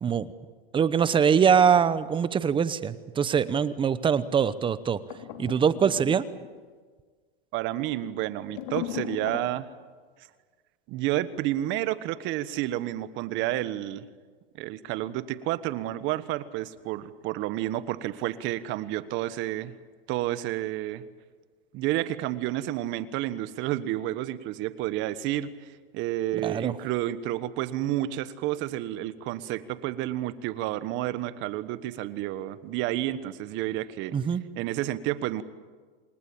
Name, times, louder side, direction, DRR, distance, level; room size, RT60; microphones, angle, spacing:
voice 1, 0.7-5.0 5.4-6.2 26.4-26.7 34.1-34.4, right 7 dB, 15° right, 15 dB, 0.9 m, -23 dB
sound 1, 5.1-6.6 8.5-9.5, left 12 dB, 60° left, 3.0 m, -37 dB
voice 2, 7.5-9.7 10.9-14.1 14.6-19.7 20.1-21.0 21.7-25.7 25.9-34.1 34.5-35.4, right 14 dB, 40° right, 14 dB, 1.4 m, -30 dB
27.5 x 20.5 x 8.7 m, 1.5 s
supercardioid pair, 135°, 29 cm